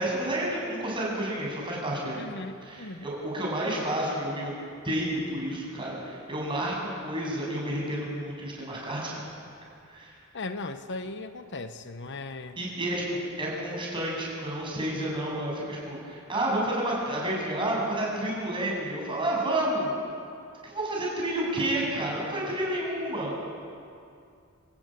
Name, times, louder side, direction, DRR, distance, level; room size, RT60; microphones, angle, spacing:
voice 1, 0.0-2.3 2.6-4.6 4.8-9.1 9.9-10.1 12.6-19.9 20.6-23.4, right 1 dB, 25° right, -3 dB, 7.8 m, -30 dB
voice 2, 2.1-3.1 10.3-12.6, left 3 dB, 55° left, 9 dB, 1.0 m, -37 dB
28.0 x 16.5 x 9.2 m, 2.4 s
head